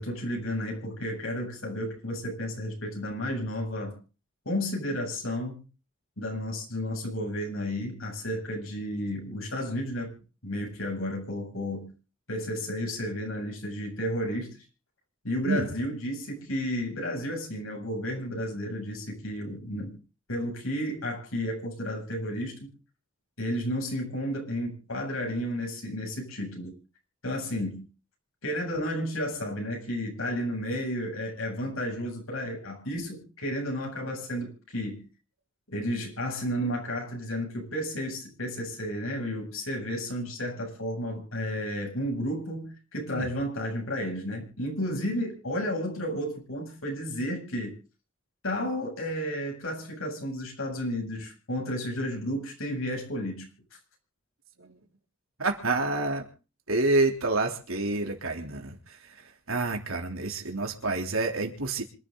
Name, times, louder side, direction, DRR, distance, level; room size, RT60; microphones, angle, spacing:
voice 1, 0.0-4.0 4.4-5.6 6.2-10.2 10.4-11.9 12.3-14.6 15.2-20.0 20.3-22.7 23.4-26.7 27.2-27.9 28.4-35.1 35.7-47.7 48.4-53.5, equal, 80° left, 1 dB, 8.0 m, -32 dB
voice 2, 55.4-56.3 56.7-61.8, right 2 dB, 90° right, 3 dB, 3.5 m, -28 dB
26.5 x 11.0 x 4.0 m, 0.35 s
head